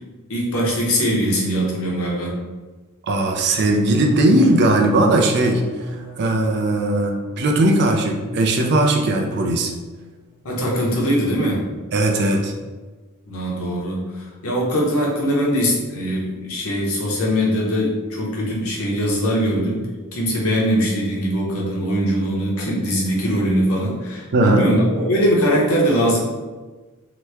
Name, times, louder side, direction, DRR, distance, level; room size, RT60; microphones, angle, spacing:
voice 1, 0.3-2.4 10.4-11.6 13.3-26.2, equal, 70° left, -3 dB, 0.8 m, -21 dB
voice 2, 3.1-5.6 6.2-9.7 11.9-12.5 24.3-24.7, right 1 dB, 50° right, 2 dB, 0.4 m, -18 dB
sound 1, 3.5-9.4 9.7-10.2 10.5-10.9, left 1 dB, 5° right, 0.5 m, -42 dB
2.9 x 2.2 x 3.3 m, 1.3 s
head